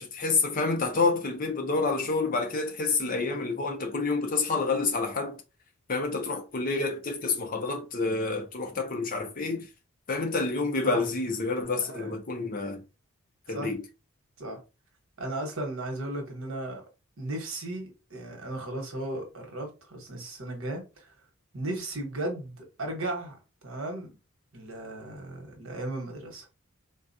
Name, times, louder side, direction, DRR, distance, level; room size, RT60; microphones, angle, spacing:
voice 1, 0.0-5.4 5.9-9.7 10.1-12.8 13.5-13.8, left 3 dB, 40° left, 0.7 m, -28 dB
voice 2, 15.2-16.9 17.2-21.1 21.5-23.4 23.6-24.1 24.5-26.5, right 1 dB, 65° right, 1.2 m, -35 dB
3.8 x 2.4 x 2.6 m
head